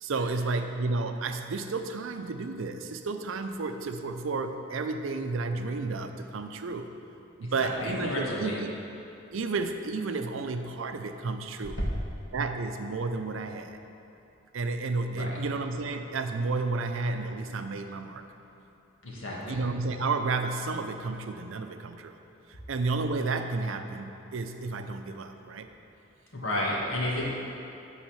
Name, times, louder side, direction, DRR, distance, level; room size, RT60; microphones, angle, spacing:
voice 1, 0.0-6.9 7.4-8.7 9.3-11.8 12.3-13.8 14.5-18.2 19.5-22.2 22.5-25.7, right 3 dB, 75° right, 7 dB, 0.5 m, -32 dB
voice 2, 7.4-8.6 15.1-15.4 19.0-19.7 26.3-27.3, left 1 dB, 80° left, -4 dB, 1.8 m, -32 dB
8.9 x 4.1 x 7.0 m, 2.8 s
head